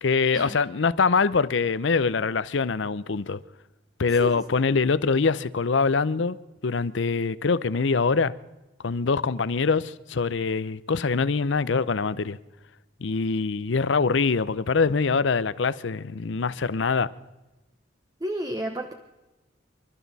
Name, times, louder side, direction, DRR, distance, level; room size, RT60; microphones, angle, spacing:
voice 1, 0.0-3.4 4.0-6.4 6.6-8.3 8.8-12.4 13.0-17.1, left 4 dB, 70° left, 0.6 m, -24 dB
voice 2, 18.2-18.9, equal, 20° right, 0.9 m, -31 dB
27.5 x 12.5 x 4.1 m
head